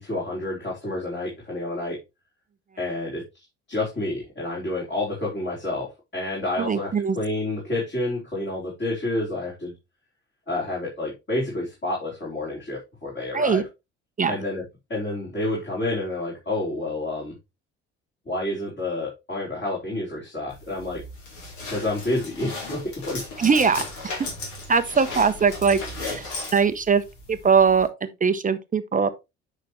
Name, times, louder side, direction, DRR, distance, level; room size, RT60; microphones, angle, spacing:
voice 1, 0.0-2.0 2.8-6.9 7.1-9.7 10.5-13.6 14.3-14.6 14.9-17.4 18.3-21.0 21.7-23.3, left 2 dB, 30° left, 4.3 m, -29 dB
voice 2, 6.6-7.2 13.3-13.6 14.2-14.4 23.4-24.2 24.7-26.3 26.5-29.1, right 5 dB, 20° right, 0.8 m, -21 dB
sound 1, 20.5-27.9, left 2 dB, 55° left, 3.4 m, -36 dB
9.5 x 5.9 x 3.1 m
figure-of-eight pair, 55°, 36 cm